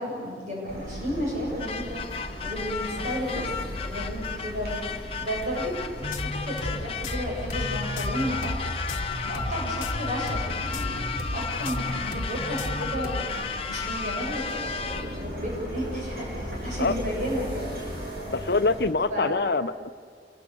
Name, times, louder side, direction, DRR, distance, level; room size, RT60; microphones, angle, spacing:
voice 1, 0.0-2.0 2.4-3.5 3.8-8.8 9.2-11.0 11.3-17.7 18.2-18.4 19.1-19.4, equal, 45° right, -3 dB, 7.7 m, -33 dB
sound 1, 0.7-18.9, equal, 65° right, 7.8 m, -38 dB
sound 2, 1.6-15.3, left 6 dB, 30° left, 1.3 m, -34 dB
sound 3, 6.0-13.2, left 1 dB, 50° left, 1.4 m, -34 dB
voice 2, 18.3-19.9, left 3 dB, 65° left, 9 dB, 0.8 m, -24 dB
28.5 x 23.5 x 6.9 m, 2.2 s
head